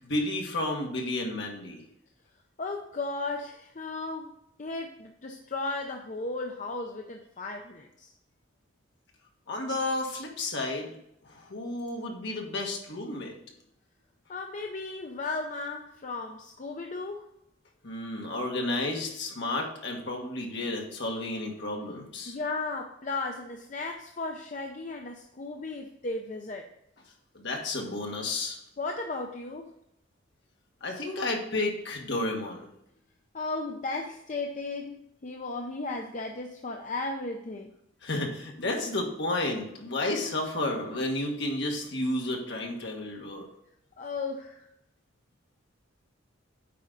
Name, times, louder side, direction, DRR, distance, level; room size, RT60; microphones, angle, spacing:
voice 1, 0.0-1.8 9.5-11.0 11.2-13.4 17.8-22.4 27.3-28.6 30.8-32.7 38.0-43.5, left 2 dB, 60° left, 1 dB, 1.7 m, -32 dB
voice 2, 2.6-8.1 10.1-10.2 14.3-17.2 22.3-26.7 28.8-29.7 33.3-37.7 44.0-44.7, left 3 dB, 40° left, 2 dB, 0.6 m, -35 dB
8.5 x 4.9 x 4.0 m, 0.78 s
head